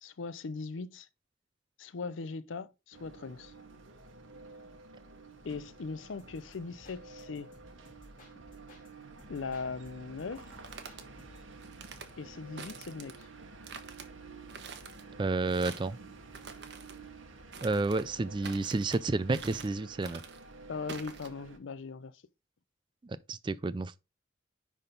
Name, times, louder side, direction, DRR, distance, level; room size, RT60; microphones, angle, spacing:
voice 1, 0.0-1.1 1.8-3.5 5.4-7.5 9.3-10.5 12.2-13.3 20.7-22.2, left 4 dB, 75° left, 0.5 m, -39 dB
sound 1, 2.9-21.6, right 3 dB, 90° right, 1.3 m, -51 dB
sound 2, 6.2-8.9 9.2-11.5, left 1 dB, 45° left, 3.0 m, -58 dB
sound 3, 10.4-11.0 11.6-12.1 12.6-13.3 13.6-14.1 14.5-15.0 15.5-15.9 16.3-17.0 17.5-18.1 18.4-19.0 19.3-19.8 20.0-20.4 20.9-21.3, right 5 dB, 60° right, 1.0 m, -46 dB
voice 2, 15.2-16.0 17.6-20.2 23.0-24.0, right 3 dB, 25° right, 0.3 m, -31 dB
9.9 x 3.6 x 3.9 m
head